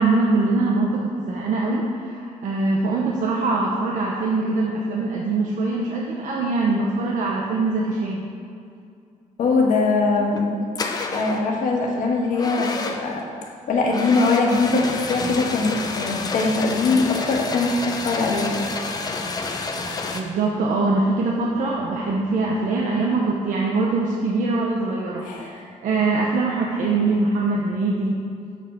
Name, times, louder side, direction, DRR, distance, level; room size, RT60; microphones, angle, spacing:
voice 1, 0.0-8.3 20.1-28.2, right 3 dB, 70° right, -2 dB, 0.9 m, -23 dB
voice 2, 9.4-10.6 11.1-13.3 13.7-18.6 25.2-25.5, left 3 dB, 75° left, -1 dB, 1.4 m, -21 dB
sound 1, 10.2-10.4 10.8-11.5 12.3-13.2 13.9-20.2, left 3 dB, 30° left, 0.6 m, -29 dB
6.0 x 5.6 x 6.9 m, 2.4 s
cardioid pair, 150°, 13 cm